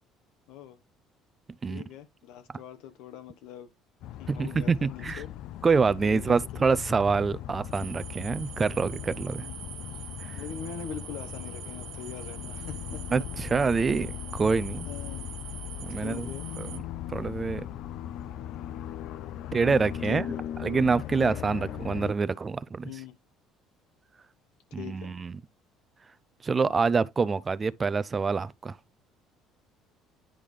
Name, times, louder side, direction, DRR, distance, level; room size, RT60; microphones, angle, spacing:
voice 1, 0.5-0.8 1.7-3.7 4.2-5.3 6.0-6.6 9.4-9.7 10.3-13.3 14.9-15.4 15.9-16.5 19.6-20.4 21.2-21.4 22.8-23.1 24.8-25.1, left 9 dB, 85° left, 1.2 m, -42 dB
sound 1, 4.0-22.1, left 11 dB, 65° left, 0.4 m, -38 dB
voice 2, 4.3-5.2 5.6-9.4 10.3-10.4 13.1-14.9 15.8-16.3 16.6-16.8 17.1-17.7 19.5-20.3 20.6-22.9 24.7-25.3 26.4-28.8, right 4 dB, 25° right, 0.4 m, -26 dB
sound 2, 7.7-16.8, right 13 dB, 65° right, 0.8 m, -44 dB
10.0 x 3.7 x 3.2 m
cardioid pair, 125°, 0 cm